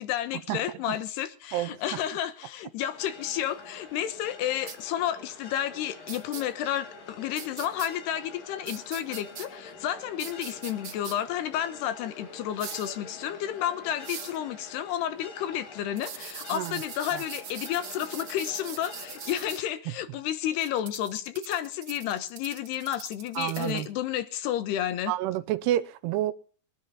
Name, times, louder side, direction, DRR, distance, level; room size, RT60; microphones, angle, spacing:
voice 1, 0.0-25.1, left 11 dB, 85° left, 3.3 m, -31 dB
voice 2, 1.5-2.0 16.5-16.8 17.1-17.2 23.4-23.9 25.1-26.3, right 13 dB, 85° right, 2.9 m, -29 dB
sound 1, 2.9-19.6, left 3 dB, 60° left, 4.5 m, -46 dB
sound 2, 4.7-4.8 6.1-6.4 7.4-7.9 8.7-9.5 10.2-11.1 12.6-12.9 14.0-14.4 16.0-19.6 20.6-23.9, right 7 dB, 65° right, 1.2 m, -41 dB
22.5 x 10.5 x 4.1 m
omnidirectional pair, 4.6 m